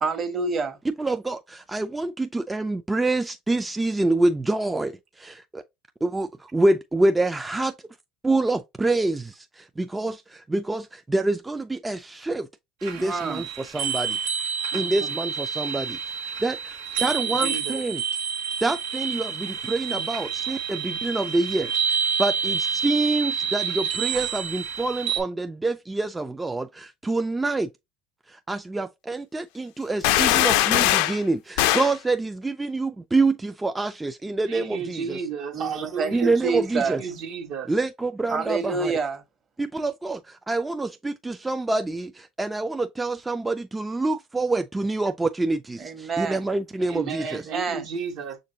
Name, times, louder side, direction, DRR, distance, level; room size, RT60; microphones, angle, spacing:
voice 1, 0.0-0.8 13.0-13.5 14.7-15.1 35.5-37.0 38.3-39.2 45.8-46.4 47.2-47.8, right 4 dB, 35° right, 1.2 m, -28 dB
voice 2, 0.8-5.6 6.0-7.7 8.2-12.5 12.8-14.2 14.7-18.0 18.6-27.7 28.3-35.2 36.1-37.0 37.7-38.9 39.6-47.5, right 2 dB, 15° right, 0.3 m, -26 dB
sound 1, 12.8-25.2, right 6 dB, 90° right, 1.0 m, -28 dB
voice 3, 17.0-17.8 34.4-36.4 36.8-37.7 46.8-48.4, right 6 dB, 60° right, 1.1 m, -33 dB
sound 2, 30.0-31.2 31.6-31.9, left 14 dB, 80° left, 0.4 m, -20 dB
6.5 x 2.6 x 2.7 m
supercardioid pair, 105°, 0 cm